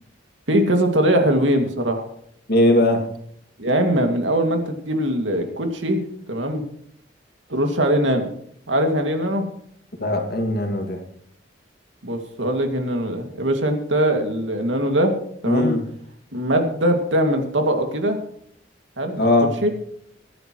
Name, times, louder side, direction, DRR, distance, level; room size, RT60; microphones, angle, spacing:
voice 1, 0.5-2.0 3.6-6.0 6.3-6.6 7.5-8.3 8.7-9.5 12.0-15.2 15.4-15.7 16.3-18.2 19.0-19.3 19.6-19.7, right 1 dB, 85° right, 4 dB, 2.4 m, -21 dB
voice 2, 2.5-3.0 10.0-11.0 15.5-15.9 19.2-19.5, left 1 dB, 55° left, 3 dB, 2.3 m, -19 dB
23.0 x 10.5 x 3.2 m, 0.68 s
head